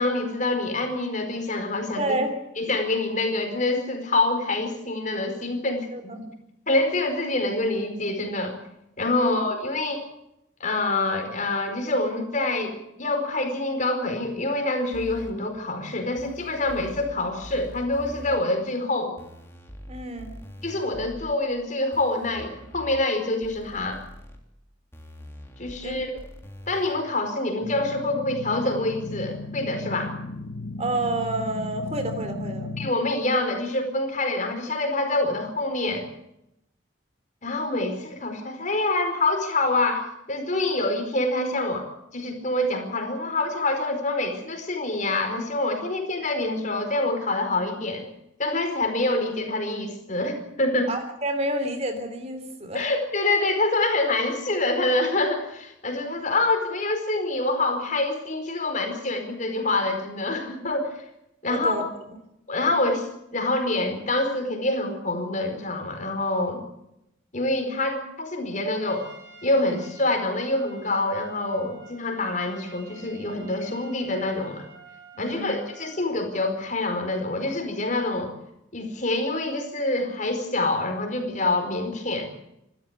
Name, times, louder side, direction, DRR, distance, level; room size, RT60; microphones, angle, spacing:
voice 1, 0.0-2.2 2.6-6.2 6.7-8.5 9.0-10.0 10.6-19.1 20.6-24.0 25.6-26.1 26.7-30.1 32.8-36.1 37.4-48.1 48.4-50.9 52.7-61.0 61.4-61.7 62.5-66.6 67.3-69.1 69.4-74.7 75.2-78.3 78.7-82.3, left 2 dB, 40° left, 5 dB, 4.7 m, -26 dB
voice 2, 1.9-2.3 5.7-6.2 9.2-9.3 19.9-20.4 25.8-26.0 30.8-32.7 50.9-52.8 61.5-61.9 75.1-75.5, right 1 dB, 35° right, 7 dB, 3.2 m, -29 dB
sound 1, 14.9-15.3 16.2-17.1 17.4-18.4 19.2-21.3 21.9-23.0 23.4-24.4 24.9-26.9, equal, 15° left, 3.4 m, -43 dB
sound 2, 27.6-32.9, left 2 dB, 60° left, 1.2 m, -35 dB
Trumpet, 68.8-76.1, right 4 dB, 65° right, 4.8 m, -49 dB
26.5 x 13.5 x 8.2 m, 0.83 s
head